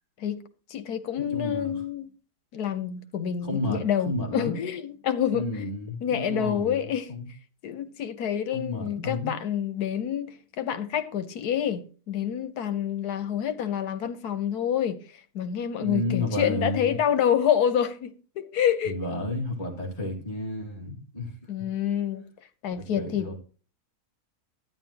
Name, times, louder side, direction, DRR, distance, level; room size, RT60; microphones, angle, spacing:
voice 1, 0.7-2.1 2.5-5.6 6.0-7.1 7.6-15.0 15.3-18.9 21.5-22.2 22.6-23.4, left 9 dB, 85° left, 1.5 m, -27 dB
voice 2, 1.3-1.7 3.4-4.6 5.3-7.3 8.5-9.4 15.8-17.0 18.8-21.3 22.8-23.3, left 2 dB, 25° left, 2.3 m, -31 dB
13.0 x 9.8 x 2.9 m
omnidirectional pair, 1.6 m